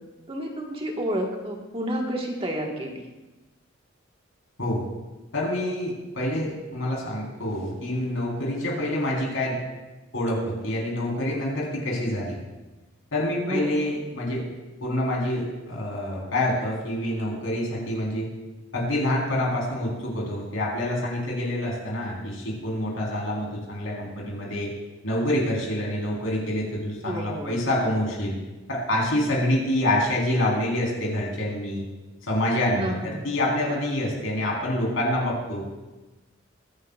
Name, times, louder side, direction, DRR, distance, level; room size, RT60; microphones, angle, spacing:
voice 1, 0.3-3.0 13.5-13.7 27.0-27.6 32.8-33.2, equal, 30° right, 0 dB, 1.6 m, -30 dB
voice 2, 5.3-9.6 10.1-12.4 13.1-14.4 14.8-18.3 18.7-24.7 25.0-28.3 28.7-31.8 32.3-35.6, left 1 dB, 85° left, -3 dB, 4.1 m, -27 dB
22.0 x 9.9 x 2.5 m, 1.1 s
head